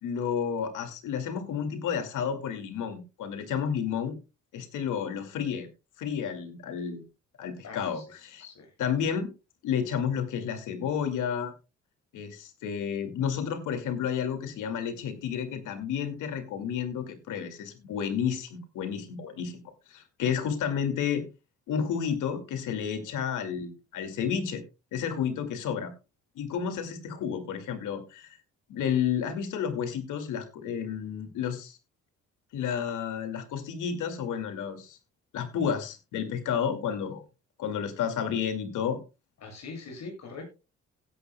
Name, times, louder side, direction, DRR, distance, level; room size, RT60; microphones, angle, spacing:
voice 1, 0.0-4.1 4.5-5.7 6.0-7.0 7.4-8.4 8.8-9.3 9.6-11.5 12.1-19.6 19.9-21.3 21.7-24.6 24.9-25.9 26.4-28.4 28.7-31.8 32.5-35.0 35.3-37.2 37.6-39.0, left 7 dB, 85° left, 7 dB, 2.3 m, -31 dB
voice 2, 7.6-8.0 8.4-8.7 27.1-27.2 39.4-40.5, left 3 dB, 60° left, 2 dB, 7.4 m, -42 dB
16.0 x 11.0 x 2.2 m, 0.28 s
cardioid pair, 90°, 30 cm